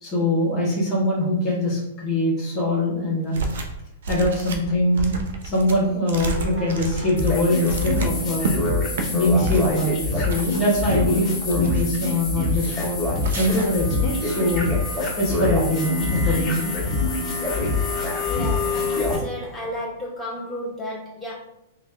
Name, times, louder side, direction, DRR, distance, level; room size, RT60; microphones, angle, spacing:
voice 1, 0.0-3.4 4.1-5.2 5.4-8.5 9.1-13.0 13.3-14.7 15.2-16.8, left 1 dB, 30° left, -4 dB, 0.9 m, -23 dB
sound 1, 3.3-3.8 4.0-8.5 8.9-9.1 9.4-9.8 10.3-11.0 11.4-12.0 12.5-12.9 13.2-13.8, right 3 dB, 70° right, 0.5 m, -31 dB
sound 2, 7.2-19.1, left 3 dB, 15° left, 1.4 m, -25 dB
voice 2, 18.2-21.3, left 1 dB, 5° right, -7 dB, 1.4 m, -33 dB
3.0 x 2.1 x 3.2 m, 0.86 s
hypercardioid pair, 115°, 0 cm